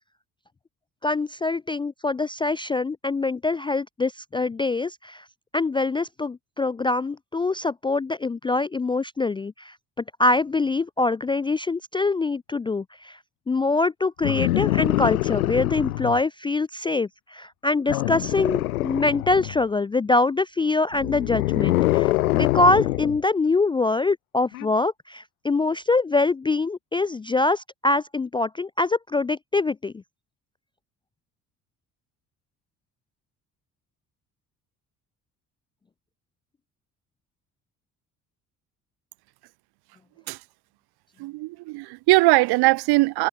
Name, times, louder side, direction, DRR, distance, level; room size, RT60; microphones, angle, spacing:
voice 1, 1.0-5.2 5.5-9.7 10.2-13.2 13.5-29.9, left 3 dB, 10° left, 0.4 m, -24 dB
sound 1, 14.2-16.2 17.9-19.6 20.9-23.2 24.5-24.7, left 17 dB, 75° left, 2.3 m, -24 dB
voice 2, 41.2-43.3, right 22 dB, 60° right, 2.1 m, -20 dB
figure-of-eight pair, 50°, 44 cm